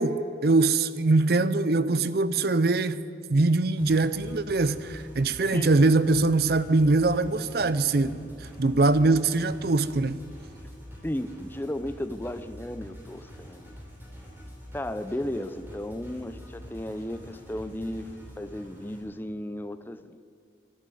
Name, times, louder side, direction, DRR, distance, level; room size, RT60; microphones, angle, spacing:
voice 1, 0.0-3.0 3.3-10.2, right 3 dB, 55° right, 0.6 m, -23 dB
sound 1, 3.8-19.0, equal, 10° right, 3.2 m, -46 dB
voice 2, 11.0-13.7 14.7-20.2, left 1 dB, 10° left, 0.5 m, -34 dB
12.0 x 11.5 x 9.2 m
head